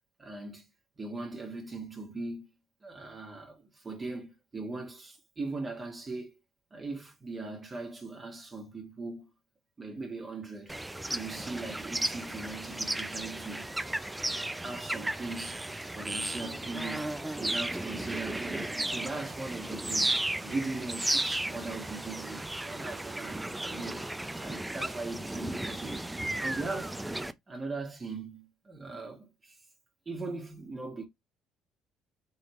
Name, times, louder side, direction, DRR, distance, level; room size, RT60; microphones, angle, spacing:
voice 1, 0.2-0.6 1.0-2.5 2.8-6.4 6.7-9.3 9.8-10.7 11.1-13.7 14.2-15.6 15.9-26.0 26.4-27.0 27.5-29.6 30.0-31.1, right 3 dB, 25° right, 1.4 m, -40 dB
sound 1, 10.7-27.3, right 1 dB, 10° right, 0.4 m, -34 dB
3.8 x 3.3 x 2.9 m
supercardioid pair, 85°, 0 cm